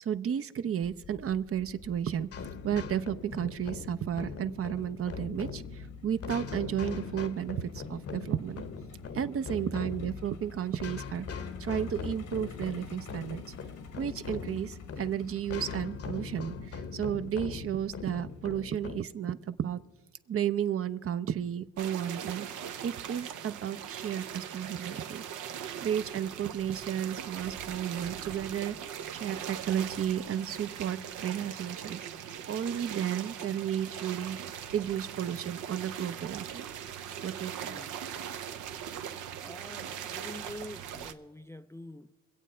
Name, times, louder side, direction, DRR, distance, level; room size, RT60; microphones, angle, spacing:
voice 1, 0.0-2.3 2.6-8.6 9.1-13.4 14.0-19.8 20.3-25.3 25.8-36.6 37.2-37.8, right 9 dB, 50° right, 0.7 m, -33 dB
Truck, 0.8-18.6, left 4 dB, 80° left, 1.6 m, -53 dB
sound 1, 2.3-19.0, left 5 dB, 50° left, 1.0 m, -41 dB
sound 2, 21.8-41.1, right 9 dB, 85° right, 0.9 m, -40 dB
voice 2, 37.6-38.0 38.5-39.1 39.4-42.1, left 1 dB, 10° left, 0.4 m, -47 dB
24.5 x 8.3 x 4.3 m
cardioid pair, 90°, 30 cm